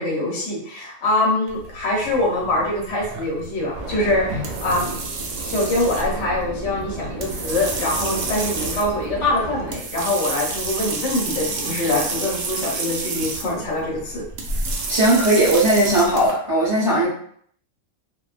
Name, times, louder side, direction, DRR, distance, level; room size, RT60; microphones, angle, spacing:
voice 1, 0.0-4.9 5.4-14.2, left 2 dB, 60° left, -4 dB, 1.0 m, -24 dB
sound 1, 1.5-16.3, right 3 dB, 70° right, 0.8 m, -30 dB
sound 2, 3.7-9.8, right 2 dB, 90° right, 0.3 m, -33 dB
voice 2, 14.9-17.1, right 1 dB, 35° right, -8 dB, 0.6 m, -17 dB
2.5 x 2.2 x 2.4 m, 0.62 s
omnidirectional pair, 1.4 m